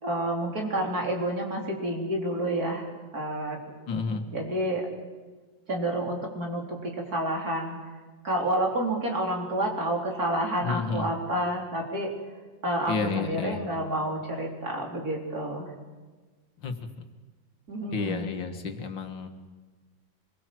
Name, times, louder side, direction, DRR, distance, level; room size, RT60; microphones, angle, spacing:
voice 1, 0.0-2.9 3.1-3.6 4.3-4.9 5.7-7.8 8.2-12.1 12.6-15.7 17.7-18.3, right 1 dB, 50° right, 0 dB, 4.4 m, -29 dB
voice 2, 3.9-4.3 10.6-11.1 12.9-13.6 16.6-16.7 17.9-19.3, left 4 dB, 80° left, 6 dB, 2.5 m, -31 dB
25.5 x 22.0 x 7.7 m, 1.3 s
omnidirectional pair, 2.0 m